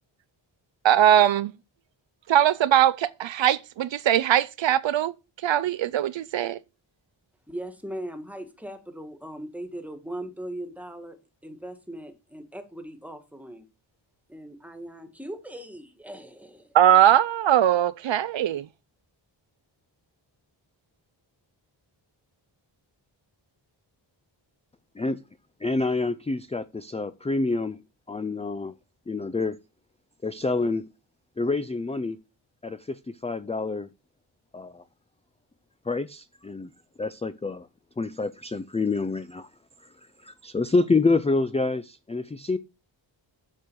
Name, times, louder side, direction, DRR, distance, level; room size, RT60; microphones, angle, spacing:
voice 1, 0.8-1.5 2.3-5.1 5.4-6.6 16.7-18.6, right 11 dB, 70° right, 0.5 m, -20 dB
voice 2, 7.5-11.2 11.4-13.7 14.3-16.8, right 1 dB, 5° right, 1.8 m, -39 dB
voice 3, 25.6-27.8 28.1-28.7 29.1-29.6 30.2-30.8 31.4-32.2 32.6-33.9 34.5-34.8 35.9-36.7 37.0-37.7 38.0-39.5 40.2-42.6, left 3 dB, 15° left, 0.4 m, -27 dB
7.5 x 6.9 x 4.6 m
wide cardioid pair, 90°, 47 cm